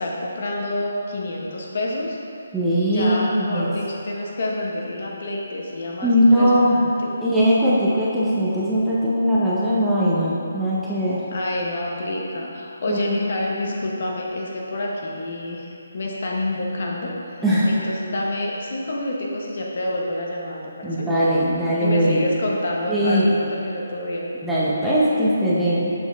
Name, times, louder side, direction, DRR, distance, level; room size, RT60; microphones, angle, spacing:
voice 1, 0.0-2.2 2.9-7.1 11.3-21.0 21.8-24.3, left 1 dB, 55° left, -2 dB, 1.0 m, -28 dB
voice 2, 2.5-3.7 6.0-6.8 7.2-11.2 12.9-13.0 17.4-17.7 20.8-22.3 22.9-23.3 24.4-25.9, equal, 5° right, -10 dB, 0.8 m, -20 dB
6.5 x 5.1 x 3.5 m, 2.6 s
hypercardioid pair, 160°, 0 cm